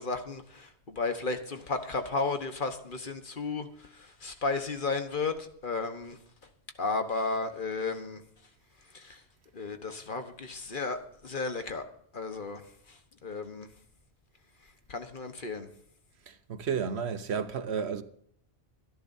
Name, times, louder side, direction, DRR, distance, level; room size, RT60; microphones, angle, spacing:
voice 1, 0.0-6.2 6.8-8.2 8.9-9.2 9.5-11.8 12.1-12.6 12.9-13.7 14.9-15.7, left 3 dB, 50° left, 1.4 m, -34 dB
voice 2, 16.3-18.0, right 6 dB, 75° right, 1.2 m, -32 dB
25.5 x 11.0 x 2.7 m
omnidirectional pair, 1.1 m